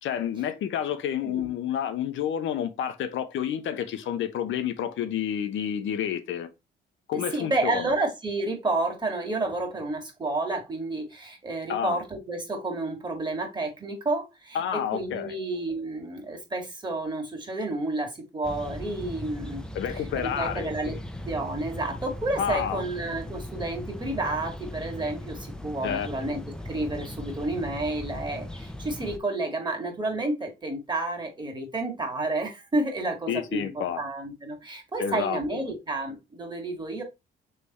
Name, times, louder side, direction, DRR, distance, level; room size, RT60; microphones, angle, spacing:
voice 1, 0.0-6.5 7.1-7.9 11.7-12.0 14.5-15.3 19.7-21.0 22.4-22.9 25.8-26.1 33.3-34.0 35.0-35.7, left 9 dB, 75° left, 0.7 m, -29 dB
voice 2, 1.2-1.5 7.1-19.6 20.1-21.0 21.2-37.0, right 2 dB, 20° right, 1.7 m, -30 dB
sound 1, 18.4-29.2, left 1 dB, 5° left, 0.6 m, -38 dB
3.5 x 3.3 x 4.0 m
cardioid pair, 90°, 20 cm